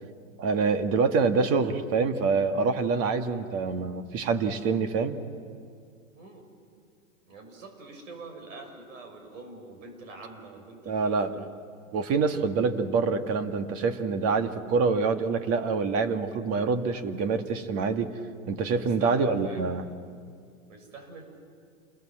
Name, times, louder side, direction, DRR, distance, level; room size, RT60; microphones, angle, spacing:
voice 1, 0.4-5.2 10.9-11.4 11.9-18.1 18.5-19.8, right 4 dB, 35° right, 7 dB, 1.8 m, -26 dB
voice 2, 7.3-11.5 18.7-19.7 20.7-21.3, right 3 dB, 65° right, 4 dB, 6.8 m, -45 dB
28.5 x 21.0 x 7.7 m, 2.2 s
hypercardioid pair, 120°, 42 cm